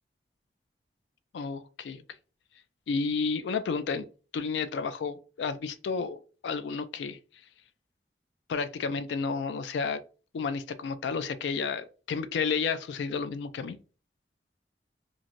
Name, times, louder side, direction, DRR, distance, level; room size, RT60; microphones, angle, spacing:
voice 1, 1.3-2.0 2.9-4.0 4.3-7.2 8.5-10.0 10.3-13.8, left 5 dB, 90° left, 0.3 m, -31 dB
3.1 x 2.5 x 2.5 m
head